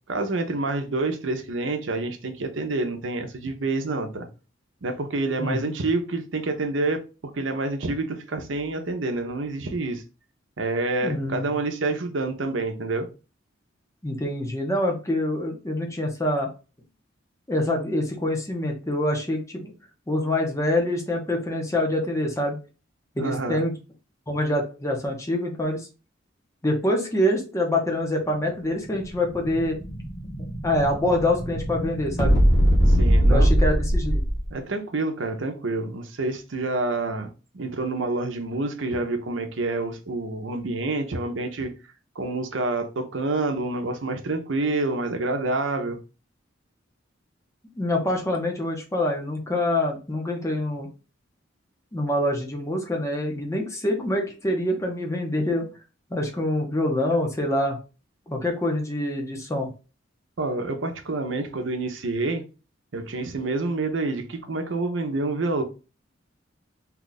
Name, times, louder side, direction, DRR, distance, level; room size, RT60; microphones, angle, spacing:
voice 1, 0.1-4.3 4.8-7.0 7.3-10.0 10.6-13.1 23.2-23.6 32.9-33.5 34.5-41.7 42.2-46.0 60.4-62.4 62.9-65.6, right 2 dB, 75° right, 0.7 m, -28 dB
voice 2, 5.4-5.7 10.9-11.6 14.0-16.5 17.5-19.7 20.1-22.6 23.2-23.7 24.3-25.8 26.6-29.8 30.6-32.4 33.3-34.2 47.8-50.9 51.9-55.7 56.1-57.8 58.3-59.7, left 1 dB, 15° left, 0.8 m, -25 dB
Explosion, 28.6-34.5, equal, 60° left, 1.2 m, -22 dB
2.8 x 2.4 x 3.9 m
head